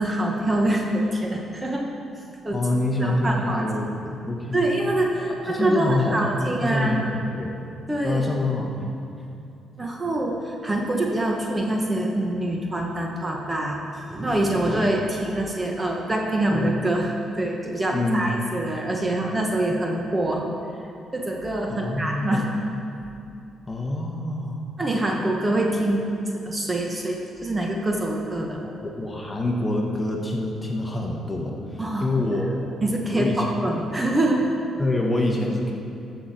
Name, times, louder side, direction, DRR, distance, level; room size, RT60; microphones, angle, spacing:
voice 1, 0.0-1.9 2.4-2.6 3.0-3.6 4.5-7.0 7.9-8.2 9.8-13.8 14.1-20.5 21.1-22.5 24.8-26.1 26.5-28.6 31.8-32.1 32.8-34.5, right 1 dB, 20° right, 0 dB, 1.3 m, -25 dB
voice 2, 2.5-4.6 5.4-6.2 6.6-7.1 7.3-7.5 8.0-8.9 17.9-18.3 21.7-22.5 23.7-24.6 28.6-32.6 33.1-33.5 34.8-35.7, left 2 dB, 20° left, 0 dB, 1.5 m, -26 dB
14.0 x 6.9 x 4.4 m, 2.6 s
cardioid pair, 90°, 0 cm